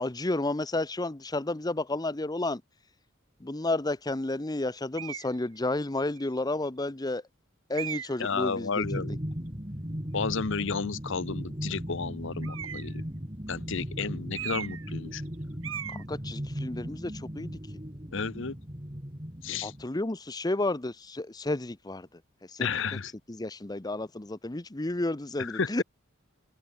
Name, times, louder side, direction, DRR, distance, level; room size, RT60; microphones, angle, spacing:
voice 1, 0.0-2.6 3.4-7.2 7.7-9.0 15.9-17.6 19.6-22.1 22.5-22.7 23.3-25.8, left 2 dB, 20° left, 0.7 m, -31 dB
sound 1, 4.9-5.3 6.2-6.3 7.7-8.3 12.4-13.0 14.3-14.9 15.2-15.3 15.6-16.0, right 10 dB, 70° right, 1.9 m, -37 dB
voice 2, 8.2-9.2 10.1-13.0 13.5-15.2 18.1-18.5 19.4-19.7 22.6-23.1 25.4-25.8, left 5 dB, 60° left, 0.9 m, -32 dB
sound 2, 8.8-19.8, equal, 25° right, 3.8 m, -37 dB
open air
head